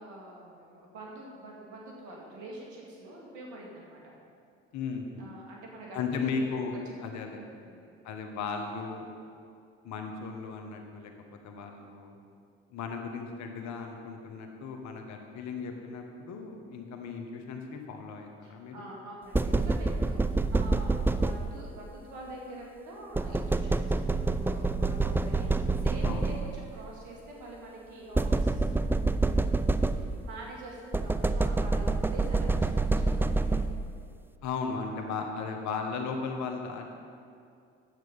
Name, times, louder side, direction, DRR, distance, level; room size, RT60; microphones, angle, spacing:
voice 1, 0.0-4.1 5.2-6.3 7.7-8.0 18.4-29.0 30.0-33.5, right 1 dB, 80° right, -2 dB, 2.2 m, -45 dB
voice 2, 4.7-5.3 5.9-7.4 7.7-9.1 9.8-12.2 12.7-18.9 26.0-26.3 34.4-36.9, left 5 dB, 70° left, 4 dB, 1.4 m, -36 dB
sound 1, 19.3-21.8 23.1-26.7 28.1-30.3 30.9-34.0, right 3 dB, 5° right, 0.4 m, -27 dB
9.6 x 7.8 x 5.4 m, 2.4 s
supercardioid pair, 60°, 29 cm